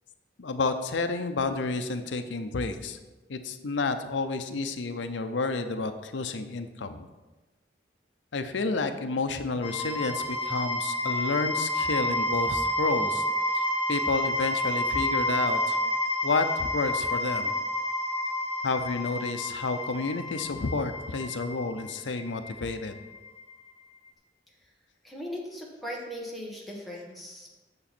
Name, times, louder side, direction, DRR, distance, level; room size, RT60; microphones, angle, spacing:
voice 1, 0.4-3.0 3.3-7.1 8.3-13.2 13.5-15.8 16.2-17.5 18.6-23.0, left 3 dB, 90° left, 8 dB, 0.6 m, -30 dB
sound 1, 9.6-23.5, left 1 dB, 30° left, 1.4 m, -30 dB
voice 2, 25.0-27.5, equal, ahead, -4 dB, 1.4 m, -38 dB
8.7 x 6.8 x 4.3 m, 1.2 s
head